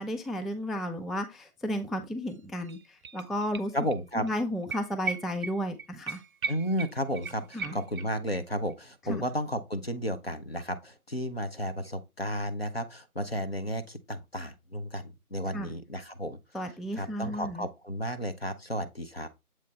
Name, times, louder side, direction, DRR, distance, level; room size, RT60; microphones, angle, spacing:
voice 1, 0.0-3.7 4.2-6.2 7.5-7.8 9.1-9.2 15.5-15.7 16.5-17.7, equal, ahead, 0.4 m, -33 dB
sound 1, 2.3-2.4 2.6-4.0 4.3-4.4 4.7-8.4 8.7-8.8, right 5 dB, 65° right, 0.6 m, -38 dB
voice 2, 3.7-4.2 6.5-16.4 16.9-19.3, equal, 45° left, 0.6 m, -33 dB
7.4 x 3.2 x 4.0 m
figure-of-eight pair, 170°, 45 cm